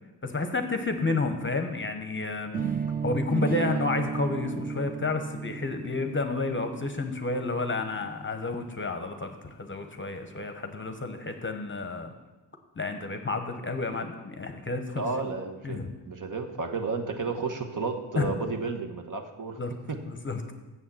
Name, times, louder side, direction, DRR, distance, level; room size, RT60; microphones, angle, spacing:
voice 1, 0.2-2.5 3.0-12.1 12.8-15.3 15.6-16.0 17.2-17.3 18.2-18.3 19.6-19.7 20.1-20.5, left 3 dB, 30° left, 6 dB, 0.8 m, -31 dB
sound 1, 2.5-8.5, right 6 dB, 20° right, 0.6 m, -34 dB
voice 2, 15.0-15.8 16.1-19.6 19.9-20.0, right 4 dB, 50° right, 5 dB, 1.0 m, -32 dB
7.0 x 6.3 x 7.3 m, 1.1 s
wide cardioid pair, 95°, 42 cm